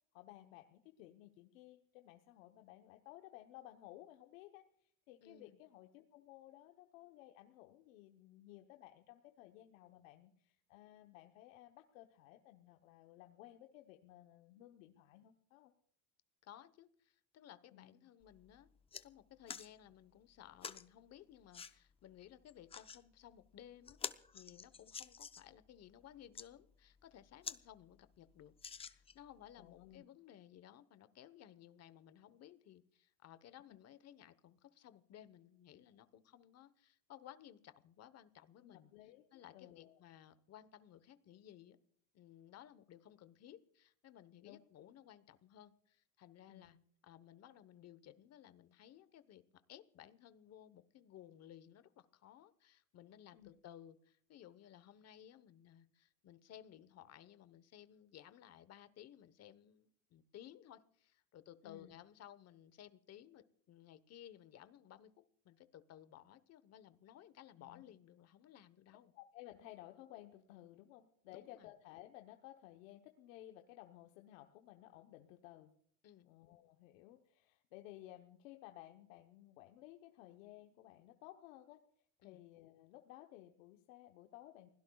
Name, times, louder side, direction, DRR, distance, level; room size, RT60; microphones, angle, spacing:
voice 1, 0.1-15.7 17.7-18.0 29.5-30.0 38.6-40.0 44.4-44.6 46.5-46.7 53.3-53.5 61.6-62.0 67.6-67.8 69.1-75.7 76.2-81.8 82.2-84.7, left 14 dB, 85° left, 5 dB, 1.1 m, -57 dB
voice 2, 5.2-5.6 16.4-18.7 19.0-28.5 28.8-38.9 39.3-41.8 42.1-46.8 47.0-49.4 49.7-69.1 71.3-71.7 76.0-76.3 82.2-82.4, left 11 dB, 40° left, 14 dB, 1.1 m, -58 dB
sound 1, 18.2-18.3 18.7-19.0 19.5-19.7 20.6-20.8 21.5-21.7 22.5-23.0 23.5-23.6 23.9-25.5 26.1-26.5 27.0-27.1 27.4-27.6 27.9-28.0 28.6-29.3 29.9-30.0, left 6 dB, 15° left, 0.5 m, -47 dB
29.5 x 16.5 x 2.3 m, 0.65 s
supercardioid pair, 115°, 39 cm